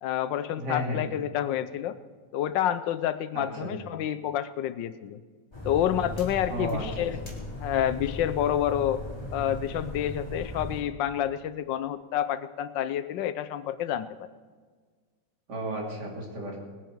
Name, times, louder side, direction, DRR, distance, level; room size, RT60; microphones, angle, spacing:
voice 1, 0.0-2.0 2.3-5.2 5.6-7.2 7.6-9.0 9.3-14.3, left 10 dB, 80° left, 12 dB, 1.4 m, -29 dB
voice 2, 0.5-1.0 3.3-3.7 6.5-7.1 15.5-16.6, equal, 65° right, -2 dB, 3.4 m, -33 dB
sound 1, 5.5-10.8, left 1 dB, 15° left, 2.9 m, -37 dB
20.0 x 10.5 x 4.6 m, 1.5 s
omnidirectional pair, 2.0 m